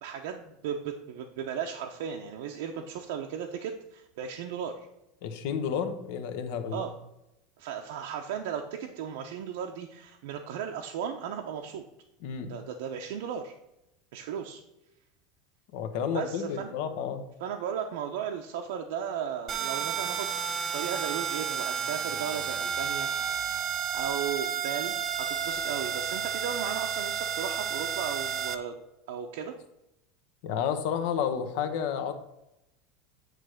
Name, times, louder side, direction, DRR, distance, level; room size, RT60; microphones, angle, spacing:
voice 1, 0.0-4.9 6.7-6.9 7.6-11.8 12.5-13.5 14.1-14.6 16.1-16.7 17.4-20.3 20.7-23.4 23.9-28.8 29.1-29.5, right 8 dB, 70° right, 2 dB, 0.7 m, -36 dB
voice 2, 5.2-6.9 12.2-12.5 15.7-17.2 30.4-32.1, left 7 dB, 55° left, 8 dB, 0.9 m, -31 dB
Horror Film Beep Sound, 19.5-28.6, right 8 dB, 25° right, 0.5 m, -31 dB
9.1 x 3.3 x 6.4 m, 0.88 s
supercardioid pair, 170°, 0 cm